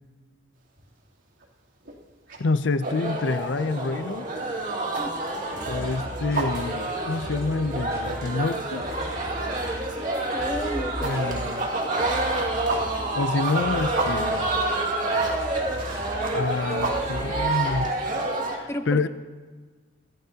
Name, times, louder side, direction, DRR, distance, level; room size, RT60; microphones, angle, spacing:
sound 1, 0.6-1.0 1.3-18.2, right 2 dB, 80° right, 3.1 m, -35 dB
voice 1, 2.4-4.3 5.7-8.9 11.0-11.7 13.1-14.5 16.3-17.9 18.5-19.1, left 3 dB, 70° left, 13 dB, 0.6 m, -27 dB
sound 2, 2.8-18.6, right 2 dB, 45° right, 2.2 m, -28 dB
sound 3, 5.5-18.3, equal, 15° right, 5.5 m, -38 dB
voice 2, 10.3-11.3 11.7-11.9 18.7-19.1, left 1 dB, 15° left, 8 dB, 0.7 m, -33 dB
22.5 x 15.5 x 2.9 m, 1.4 s
head